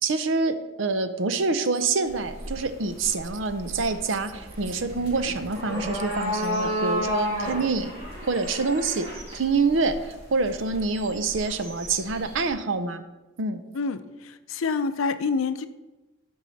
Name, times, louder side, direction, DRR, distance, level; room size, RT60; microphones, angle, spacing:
voice 1, 0.0-7.9 8.2-9.1 9.3-13.0 13.4-13.6, right 4 dB, 75° right, 10 dB, 0.7 m, -26 dB
sound 1, 2.1-12.5, equal, 30° right, 2.3 m, -33 dB
voice 2, 13.7-15.7, left 4 dB, 85° left, 12 dB, 0.5 m, -27 dB
13.0 x 4.8 x 4.1 m, 1.1 s
head